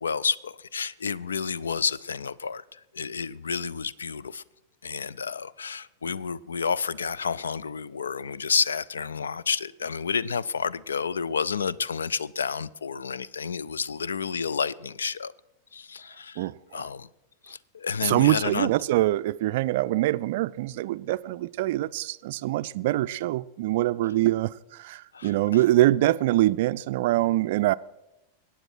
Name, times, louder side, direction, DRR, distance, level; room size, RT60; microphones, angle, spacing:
voice 1, 0.0-2.6 2.9-4.4 4.8-15.3 15.7-16.5 16.7-17.1 17.5-18.7 25.1-25.3, left 6 dB, 70° left, 0.4 m, -30 dB
voice 2, 16.4-16.8 18.0-27.7, right 16 dB, 50° right, 0.4 m, -24 dB
22.0 x 9.2 x 4.4 m
figure-of-eight pair, 90°, 0 cm